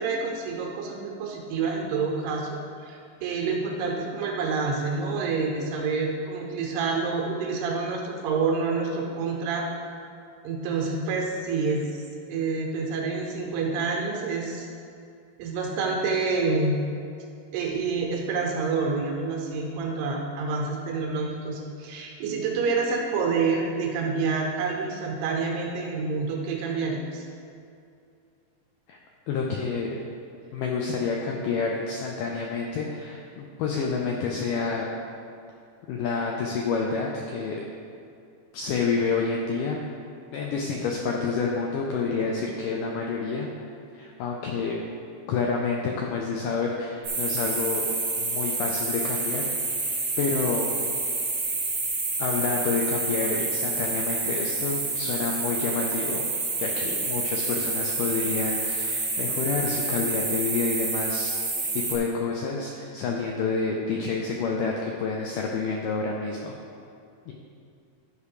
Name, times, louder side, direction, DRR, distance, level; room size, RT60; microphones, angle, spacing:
voice 1, 0.0-9.7 10.4-12.0 12.3-14.7 15.4-16.8 17.5-27.3, right 4 dB, 80° right, 0 dB, 3.1 m, -28 dB
voice 2, 29.3-30.0 30.5-34.9 35.9-37.6 38.5-39.8 40.3-43.5 43.9-44.8 45.3-47.8 48.2-49.5 49.8-50.7 52.2-56.3 56.6-61.3 61.9-66.5 67.3-67.4, left 4 dB, 85° left, 0 dB, 1.9 m, -28 dB
sound 1, 47.0-62.0, right 3 dB, 45° right, 2.8 m, -28 dB
12.0 x 5.0 x 4.9 m, 2.5 s
omnidirectional pair, 4.6 m